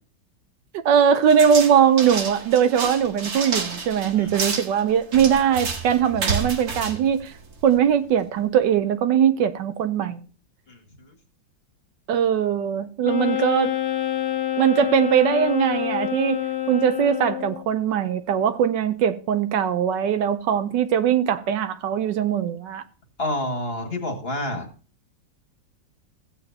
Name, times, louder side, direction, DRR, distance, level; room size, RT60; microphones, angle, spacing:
voice 1, 0.7-7.4 7.6-10.2 12.1-13.7 14.6-16.4 16.7-22.8, right 8 dB, 75° right, 1.3 m, -21 dB
sound 1, 1.3-7.8, right 4 dB, 55° right, 1.8 m, -30 dB
voice 2, 10.7-11.1 23.2-24.7, left 1 dB, 30° left, 2.0 m, -29 dB
Wind instrument woodwind instrument, 13.0-17.7, left 12 dB, 65° left, 1.5 m, -27 dB
15.5 x 8.7 x 2.8 m
omnidirectional pair, 2.0 m